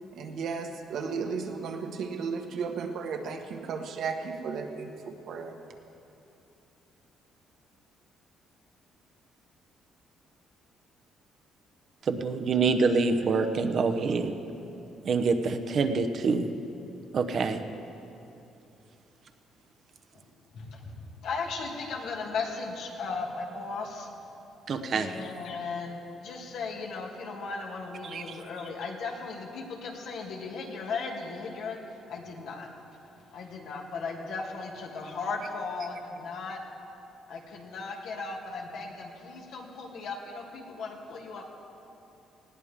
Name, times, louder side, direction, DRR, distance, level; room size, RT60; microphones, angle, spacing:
voice 1, 0.1-5.6, right 5 dB, 65° right, 4 dB, 1.5 m, -34 dB
voice 2, 12.0-14.3 15.0-16.5 17.1-17.6 24.7-25.2 28.0-28.2, right 4 dB, 45° right, 7 dB, 0.9 m, -26 dB
voice 3, 20.5-24.1 24.9-31.8 32.1-32.7 33.3-36.6 37.3-41.4, left 4 dB, 70° left, 0 dB, 2.4 m, -36 dB
19.5 x 17.0 x 3.7 m, 2.8 s
cardioid pair, 130°, 0 cm